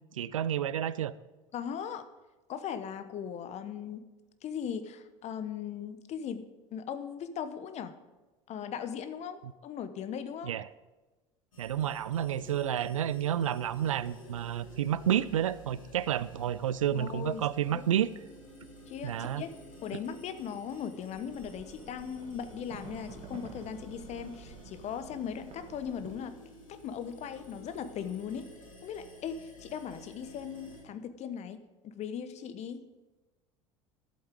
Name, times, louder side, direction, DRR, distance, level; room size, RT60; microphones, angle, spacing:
voice 1, 0.1-1.1 10.4-10.6 11.6-18.1 19.0-19.4, right 10 dB, 85° right, 18 dB, 0.4 m, -30 dB
voice 2, 1.5-2.1 2.5-4.1 4.4-7.9 8.5-10.5 16.9-17.8 18.9-19.5 19.8-26.4 26.7-28.5 28.8-32.8, left 8 dB, 45° left, 11 dB, 1.0 m, -39 dB
sound 1, 11.5-30.8, equal, 85° left, 2.3 m, -51 dB
sound 2, 21.1-26.2, right 5 dB, 40° right, 1.8 m, -50 dB
12.0 x 8.1 x 5.2 m, 1.2 s
hypercardioid pair, 75°, 16 cm